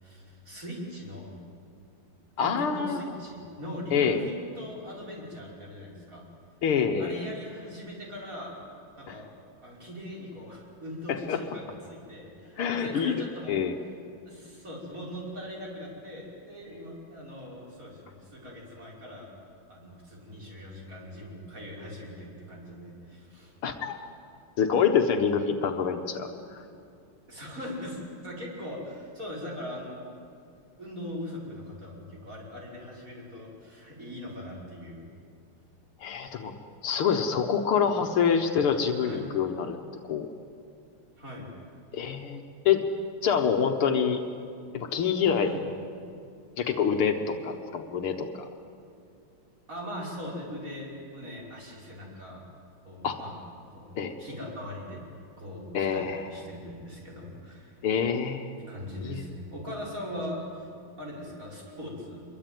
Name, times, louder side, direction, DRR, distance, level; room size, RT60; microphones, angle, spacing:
voice 1, 0.0-1.3 2.4-6.2 7.0-8.6 9.0-9.3 9.6-13.6 14.2-19.3 19.7-23.5 27.3-30.1 30.8-35.1 39.0-39.3 41.2-41.5 45.4-45.6 49.7-52.4 52.8-53.4 53.7-53.9 54.2-55.0 55.4-57.8 58.7-60.7 61.0-62.2, left 1 dB, 35° right, -3 dB, 6.2 m, -40 dB
voice 2, 2.4-3.0 3.9-4.2 6.6-7.3 9.1-9.2 11.1-11.4 12.6-13.7 23.6-24.0 24.6-26.6 36.0-36.5 36.8-39.8 40.0-40.3 41.9-42.8 43.2-44.2 44.7-45.5 46.6-48.5 53.0-53.2 54.0-54.2 55.7-56.3 57.8-58.5 59.0-59.2, left 7 dB, 80° left, 5 dB, 2.1 m, -26 dB
25.0 x 22.5 x 9.3 m, 2.4 s
omnidirectional pair, 2.4 m